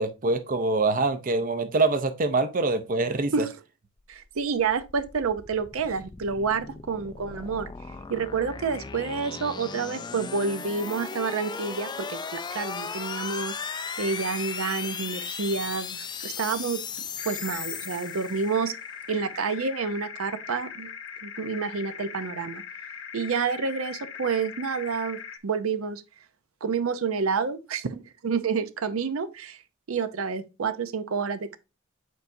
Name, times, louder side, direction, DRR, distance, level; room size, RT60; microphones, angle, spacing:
voice 1, 0.0-3.3, right 3 dB, 40° right, 0.6 m, -24 dB
sound 1, 4.1-18.7, left 6 dB, 20° left, 0.3 m, -37 dB
voice 2, 4.1-7.7 8.1-16.8 17.2-18.8 19.1-20.9 21.2-22.6 23.1-26.0 26.6-29.6 29.9-31.6, right 5 dB, 85° right, 0.6 m, -29 dB
sound 2, 17.2-25.4, left 7 dB, 70° left, 0.8 m, -40 dB
8.2 x 4.6 x 2.6 m
head